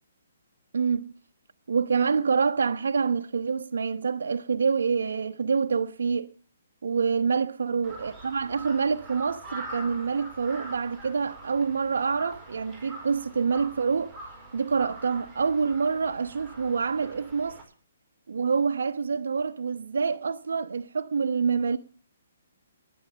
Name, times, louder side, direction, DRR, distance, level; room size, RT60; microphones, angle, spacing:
voice 1, 0.7-1.1 1.7-6.3 6.8-14.1 14.5-17.6 18.3-21.8, right 5 dB, 75° right, 0.9 m, -26 dB
Crow, 7.8-17.6, right 2 dB, 5° right, 4.9 m, -44 dB
10.5 x 9.8 x 8.4 m
hypercardioid pair, 150°, 0 cm